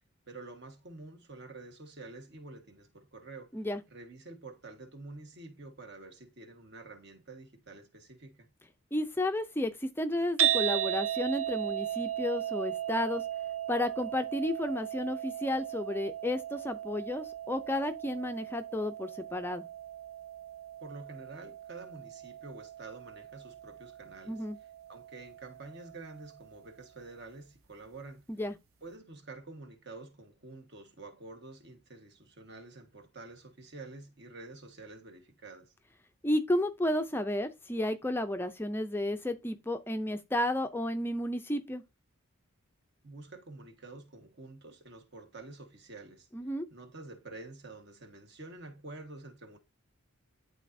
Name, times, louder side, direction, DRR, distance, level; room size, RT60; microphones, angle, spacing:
voice 1, 0.3-3.5 3.9-8.5 20.8-24.4 24.9-28.3 28.8-35.7 43.0-46.3 46.7-49.6, right 3 dB, 50° right, 1.4 m, -48 dB
voice 2, 8.9-13.2 13.7-19.7 24.3-24.6 28.3-28.6 36.2-41.8 46.3-46.7, left 1 dB, 10° left, 0.4 m, -32 dB
sound 1, 10.4-26.6, right 11 dB, 70° right, 0.7 m, -36 dB
11.5 x 4.0 x 2.6 m
head